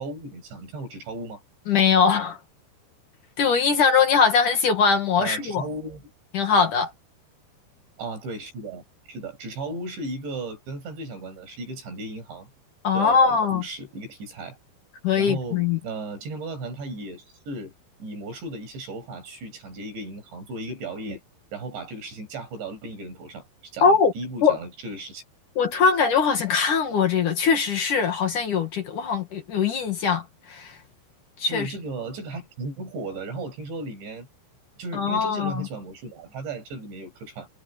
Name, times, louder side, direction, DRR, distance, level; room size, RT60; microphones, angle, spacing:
voice 1, 0.0-1.4 5.2-6.1 8.0-8.8 9.1-12.5 12.9-14.6 15.2-17.7 18.0-21.2 21.5-25.2 31.5-34.3 34.8-37.5, right 2 dB, 80° right, 9.7 m, -35 dB
voice 2, 1.7-2.4 3.4-5.6 6.3-6.9 12.8-13.6 15.0-15.8 23.8-24.1 24.4-24.6 25.6-30.8 31.4-31.7 34.9-35.7, left 6 dB, 55° left, 3.1 m, -21 dB
omnidirectional pair, 5.0 m